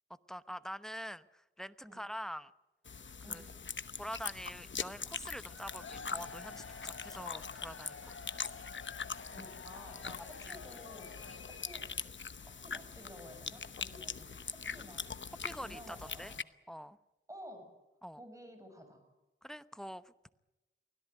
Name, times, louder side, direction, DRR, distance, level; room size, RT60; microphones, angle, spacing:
voice 1, 0.3-2.5 3.3-3.4 4.0-8.1 11.2-11.3 15.4-16.3 16.7-17.0 18.0-18.2 19.4-20.3, equal, ahead, 13 dB, 0.9 m, -45 dB
sound 1, 2.9-16.4, left 5 dB, 65° left, 0.9 m, -43 dB
Cheering / Crowd, 5.4-12.2, left 5 dB, 80° left, 1.3 m, -50 dB
voice 2, 9.3-11.9 12.4-15.1 15.6-16.4 17.3-17.7 18.1-19.0, equal, 15° right, 6 dB, 7.0 m, -52 dB
24.0 x 17.0 x 9.4 m, 1.0 s
wide cardioid pair, 80°, 21 cm